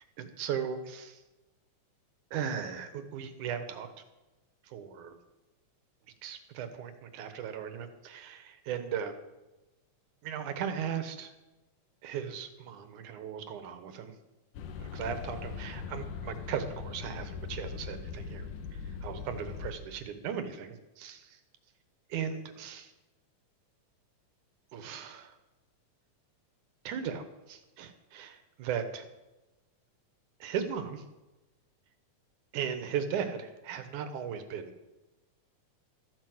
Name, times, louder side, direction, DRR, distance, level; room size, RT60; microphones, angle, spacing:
voice 1, 0.2-1.2 2.3-3.9 4.7-5.1 6.2-9.2 10.2-11.3 12.0-14.1 14.8-21.4 22.1-22.9 24.7-25.3 26.8-29.1 30.4-31.0 32.5-34.7, right 8 dB, 75° right, 9 dB, 2.6 m, -37 dB
sound 1, 14.5-19.7, left 6 dB, 80° left, 2.7 m, -40 dB
14.0 x 9.4 x 7.8 m, 1.0 s
omnidirectional pair, 3.6 m